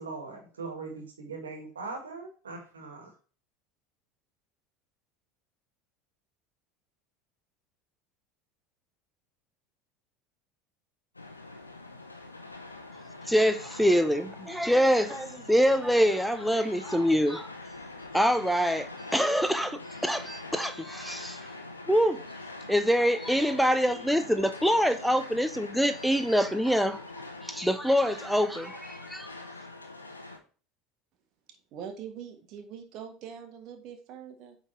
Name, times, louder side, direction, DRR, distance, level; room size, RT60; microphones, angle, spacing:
voice 1, 0.0-3.1, right 3 dB, 80° right, 1.9 m, -40 dB
sound 1, 11.1-30.4, left 2 dB, 90° left, 0.8 m, -44 dB
voice 2, 13.2-17.5 18.1-21.4 21.9-22.2 22.7-29.3, equal, ahead, 0.5 m, -25 dB
voice 3, 31.7-34.6, right 8 dB, 50° right, 1.5 m, -43 dB
8.8 x 4.1 x 3.2 m
figure-of-eight pair, 70°, 0 cm